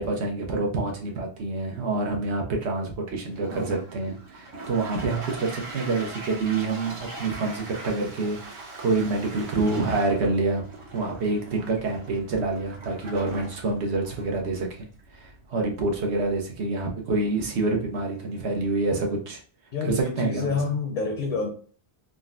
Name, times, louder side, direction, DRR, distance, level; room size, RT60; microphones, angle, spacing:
voice 1, 0.0-10.6 10.9-14.9 15.1-19.4 19.8-20.6, right 3 dB, 85° right, 1.1 m, -27 dB
Toilet flush, 3.2-16.4, right 2 dB, 50° right, 0.8 m, -41 dB
voice 2, 19.7-21.5, left 4 dB, 55° left, 0.6 m, -28 dB
3.8 x 2.1 x 2.4 m
omnidirectional pair, 1.1 m